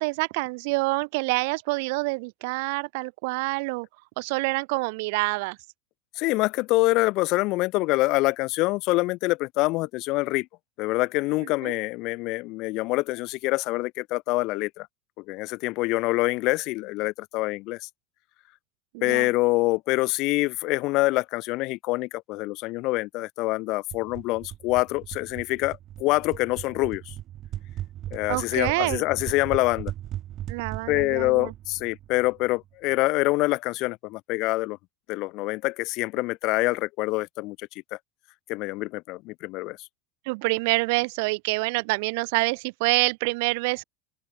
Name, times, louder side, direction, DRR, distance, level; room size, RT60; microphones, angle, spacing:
voice 1, 0.0-3.9 4.2-5.6 11.6-11.7 18.9-19.3 28.3-29.0 30.5-31.5 40.3-43.8, right 27 dB, 55° right, 0.6 m, -26 dB
voice 2, 6.2-10.5 10.8-14.9 15.2-17.8 19.0-27.1 28.1-29.9 30.9-34.8 35.1-38.0 38.5-39.8, left 21 dB, 40° left, 0.6 m, -25 dB
sound 1, 23.9-32.6, right 12 dB, 30° right, 5.5 m, -38 dB
open air
supercardioid pair, 170°, 0 cm